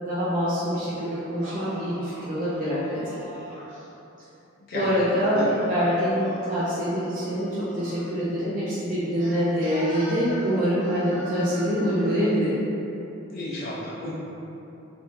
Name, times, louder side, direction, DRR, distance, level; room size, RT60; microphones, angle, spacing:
voice 1, 0.0-3.2 4.7-12.6, equal, 40° right, -11 dB, 0.5 m, -25 dB
Singing, 1.0-3.9 4.9-8.1 9.2-12.3, equal, 60° right, 0.9 m, -42 dB
voice 2, 4.7-5.5 13.3-14.1, left 1 dB, 45° left, -8 dB, 0.4 m, -33 dB
2.8 x 2.6 x 3.5 m, 2.9 s
head